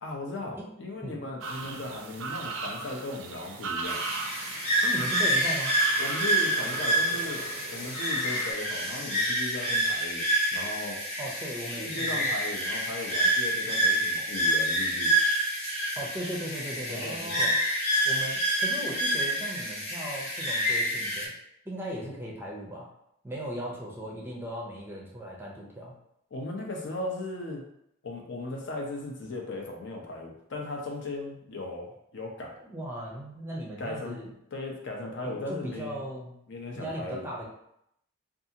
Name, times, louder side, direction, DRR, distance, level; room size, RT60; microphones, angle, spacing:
voice 1, 0.0-4.0 6.0-10.2 10.5-11.0 11.8-15.1 16.9-17.5 26.3-27.6 28.0-32.6 33.8-34.2 34.5-36.0 36.5-37.3, left 2 dB, 60° left, 0 dB, 0.6 m, -37 dB
sound 1, 1.4-8.5, right 4 dB, 70° right, 0.4 m, -38 dB
sound 2, 3.8-21.3, right 1 dB, 35° left, 0.9 m, -28 dB
voice 2, 4.8-5.8 11.2-12.3 16.0-17.5 18.0-21.3 21.6-22.9 23.2-25.9 32.6-34.3 35.2-36.4 36.7-37.4, right 1 dB, 10° right, -3 dB, 0.5 m, -37 dB
2.6 x 2.4 x 2.7 m, 0.75 s
head